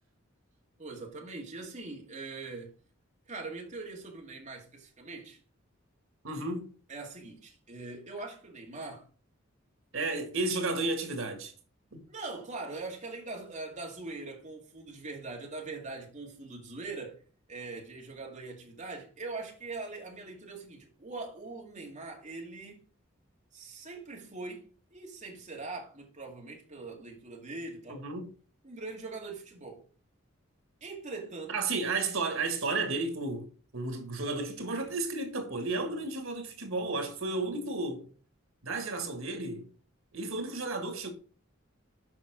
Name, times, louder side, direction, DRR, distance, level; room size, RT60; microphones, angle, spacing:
voice 1, 0.8-2.7 3.3-5.4 6.9-9.1 12.1-17.2 17.5-22.8 23.5-28.0 28.6-29.8 30.8-31.5, right 3 dB, 35° right, 2.1 m, -42 dB
voice 2, 6.2-6.7 9.9-11.5 11.9-12.0 27.9-28.3 31.5-38.1 38.6-39.7 40.1-41.1, right 3 dB, 90° right, 1.8 m, -33 dB
7.2 x 5.5 x 5.0 m
head